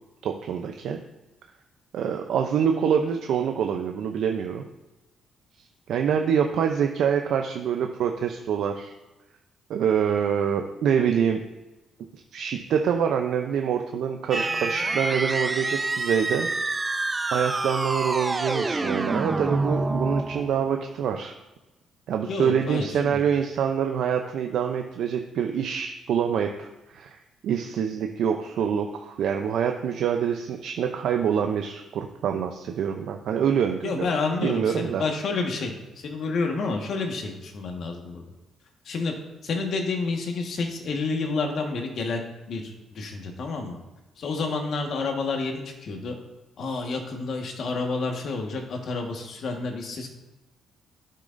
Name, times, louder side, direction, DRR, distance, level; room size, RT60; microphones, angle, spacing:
voice 1, 0.2-1.0 1.9-4.7 5.9-8.9 9.7-11.4 12.3-17.0 17.3-21.3 22.1-34.1 34.4-35.0, right 7 dB, 75° right, 4 dB, 0.5 m, -26 dB
sound 1, 14.3-20.8, right 2 dB, 25° right, 0.5 m, -27 dB
voice 2, 22.3-23.2 33.8-35.8 36.0-38.2 38.8-39.1 39.4-43.8 44.2-46.1 46.6-50.1, left 3 dB, 65° left, 2 dB, 1.4 m, -29 dB
11.5 x 6.4 x 2.6 m, 1.1 s
cardioid pair, 90°, 0 cm